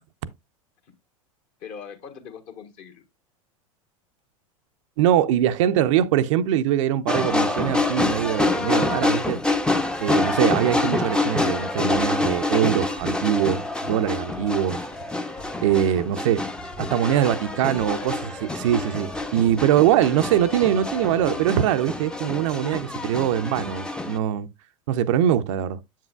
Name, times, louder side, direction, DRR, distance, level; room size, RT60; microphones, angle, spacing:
voice 1, 1.6-3.0 17.5-18.3, left 7 dB, 45° left, 1.5 m, -41 dB
voice 2, 5.0-9.4 10.0-14.9 15.6-16.5 16.8-24.5 24.9-25.8, right 10 dB, 60° right, 0.6 m, -22 dB
sound 1, 7.1-24.2, left 2 dB, 5° left, 0.6 m, -26 dB
sound 2, 11.9-21.5, equal, 85° left, 2.1 m, -47 dB
7.4 x 7.4 x 2.3 m
hypercardioid pair, 90°, 18 cm